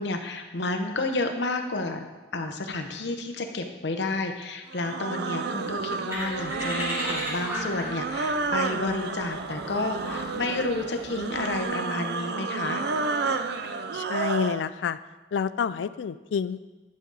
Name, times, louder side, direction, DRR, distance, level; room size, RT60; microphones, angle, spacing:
voice 1, 0.0-2.1 2.3-12.9, left 2 dB, 70° left, 5 dB, 0.9 m, -31 dB
sound 1, 4.7-14.6, right 4 dB, 65° right, 0.5 m, -31 dB
sound 2, 6.1-11.6, equal, 15° right, 2.6 m, -35 dB
voice 2, 13.9-15.0 15.3-16.7, left 6 dB, 85° left, 15 dB, 0.3 m, -28 dB
10.5 x 6.2 x 4.0 m, 1.2 s
head